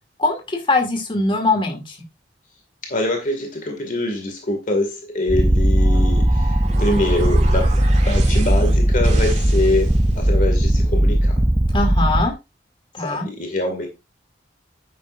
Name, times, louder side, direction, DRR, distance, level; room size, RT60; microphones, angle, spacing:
voice 1, 0.2-2.0 11.7-12.3 12.9-13.3, left 2 dB, 30° left, 2.5 m, -21 dB
voice 2, 2.8-7.7 8.1-9.9 10.2-11.3 13.0-13.9, left 1 dB, 45° left, 2.1 m, -24 dB
Purr, 5.3-12.3, right 1 dB, 15° right, 0.5 m, -17 dB
sound 1, 5.8-10.3, right 2 dB, 40° right, 2.4 m, -33 dB
11.0 x 9.3 x 2.5 m
head